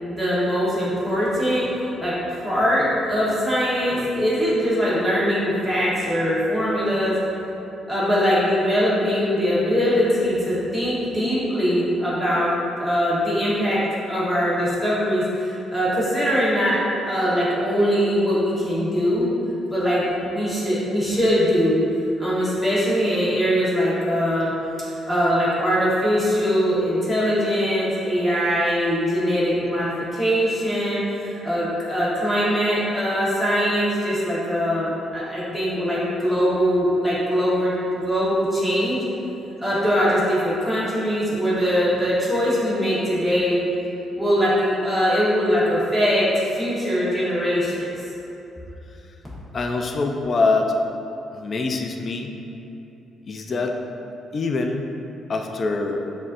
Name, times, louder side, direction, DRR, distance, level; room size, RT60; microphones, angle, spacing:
voice 1, 0.1-1.7 2.0-7.2 7.9-12.5 12.8-16.8 17.0-19.3 19.7-21.9 22.2-24.5 24.8-39.0 39.6-43.6 44.1-47.9, equal, 5° left, -10 dB, 1.4 m, -22 dB
voice 2, 49.5-50.7 51.3-52.3 53.3-53.8 54.3-54.8 55.3-56.1, left 3 dB, 45° left, 4 dB, 0.4 m, -24 dB
7.0 x 2.6 x 2.6 m, 2.9 s
cardioid pair, 90°, 0 cm